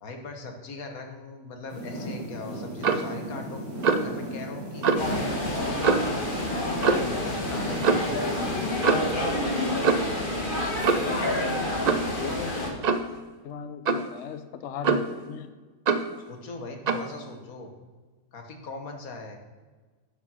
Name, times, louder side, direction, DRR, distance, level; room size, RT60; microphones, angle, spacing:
voice 1, 0.0-3.6 4.0-8.6 16.3-17.7 18.3-19.4, left 3 dB, 80° left, 4 dB, 1.7 m, -40 dB
sound 1, 1.7-8.7, right 1 dB, 85° right, 4.0 m, -35 dB
Clock, 2.8-3.1 3.8-4.1 4.8-5.1 5.8-6.2 6.8-7.1 7.8-8.1 8.8-9.2 9.8-10.2 10.8-11.2 11.9-12.1 12.8-13.1 13.9-14.1 14.8-15.2 15.9-16.1 16.9-17.1, right 5 dB, 65° right, 0.4 m, -24 dB
sound 2, 5.0-12.7, left 1 dB, 35° left, 1.6 m, -29 dB
voice 2, 11.0-11.8 12.2-12.5 13.4-15.5, left 7 dB, 60° left, 10 dB, 0.9 m, -38 dB
11.5 x 5.1 x 5.6 m, 1.3 s
omnidirectional pair, 1.5 m